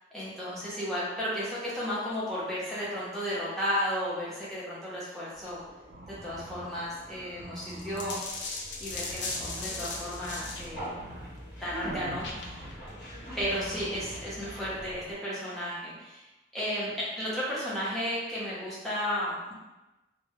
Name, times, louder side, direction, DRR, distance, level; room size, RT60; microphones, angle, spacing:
voice 1, 0.1-5.6 6.2-8.2 8.8-11.0 11.6-12.6 13.4-16.2 16.5-19.5, equal, ahead, -9 dB, 0.7 m, -33 dB
sound 1, 5.3-15.0, right 1 dB, 65° right, 0.5 m, -47 dB
Conversation, 5.7-15.1, right 1 dB, 50° left, 1.1 m, -43 dB
sound 2, 7.6-10.7 12.1-12.7, left 3 dB, 85° left, 0.4 m, -37 dB
2.1 x 2.1 x 3.3 m, 1.1 s
head